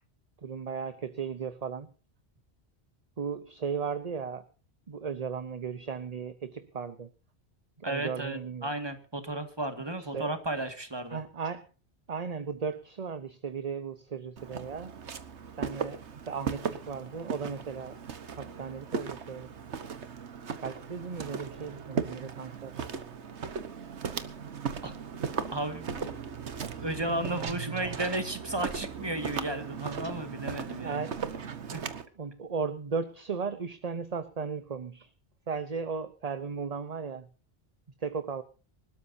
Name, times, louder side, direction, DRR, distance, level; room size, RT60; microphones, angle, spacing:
voice 1, 0.4-1.9 3.2-4.4 4.9-7.1 7.8-8.7 10.0-10.3 11.1-11.7 12.1-14.9 15.6-18.0 18.4-19.5 20.6-22.9 27.7-27.8 30.8-31.2 32.2-35.1 35.5-37.3 38.0-38.4, right 5 dB, 40° right, 11 dB, 0.9 m, -36 dB
voice 2, 7.8-11.2 24.8-24.9 25.5-26.1 26.8-31.0 31.7-31.9, right 1 dB, 20° right, 7 dB, 2.0 m, -34 dB
Walk footsteps, 14.4-32.1, right 6 dB, 80° right, 1.5 m, -37 dB
25.0 x 12.5 x 2.7 m, 0.35 s
omnidirectional pair, 1.1 m